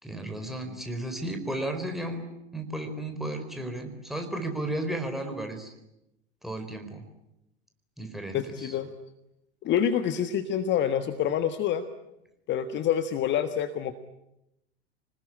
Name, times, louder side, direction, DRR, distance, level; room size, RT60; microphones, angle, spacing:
voice 1, 0.0-2.2 2.5-5.7 6.4-7.0 8.0-8.7, right 1 dB, ahead, 5 dB, 4.4 m, -34 dB
voice 2, 8.3-8.9 9.6-11.8 12.5-13.9, left 9 dB, 35° left, 10 dB, 1.5 m, -27 dB
26.5 x 20.0 x 9.9 m, 0.89 s
figure-of-eight pair, 85°, 33 cm